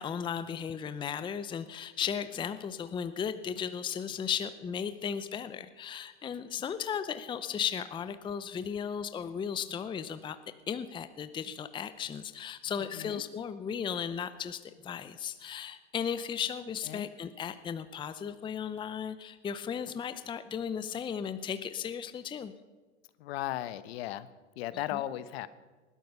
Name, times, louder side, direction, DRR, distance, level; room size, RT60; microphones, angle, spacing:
voice 1, 0.0-10.4 10.7-22.5 24.9-25.0, left 7 dB, 15° left, 12 dB, 0.6 m, -36 dB
voice 2, 23.2-24.3 24.6-25.5, left 14 dB, 60° left, 15 dB, 1.0 m, -36 dB
20.0 x 12.0 x 5.5 m, 1.3 s
hypercardioid pair, 110°, 35 cm